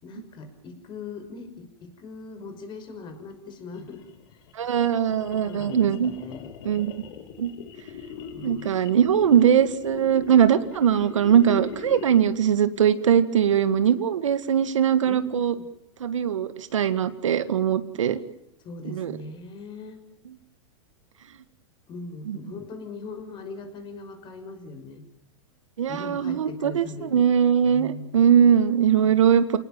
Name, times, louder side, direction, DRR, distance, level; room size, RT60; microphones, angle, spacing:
voice 1, 0.0-4.0 5.3-6.5 8.3-8.7 15.0-15.7 18.6-20.0 21.9-25.1 25.9-27.2 27.6-28.2, left 3 dB, 30° left, 8 dB, 5.9 m, -40 dB
sound 1, 3.7-12.4, left 7 dB, 55° left, 4.1 m, -41 dB
voice 2, 4.6-6.1 6.6-6.9 7.4-7.5 8.4-15.5 16.0-18.2 18.8-19.2 20.3-20.4 22.3-22.4 25.8-29.6, right 8 dB, 85° right, 11 dB, 2.1 m, -21 dB
29.0 x 19.0 x 7.5 m, 0.79 s
hypercardioid pair, 125°, 16 cm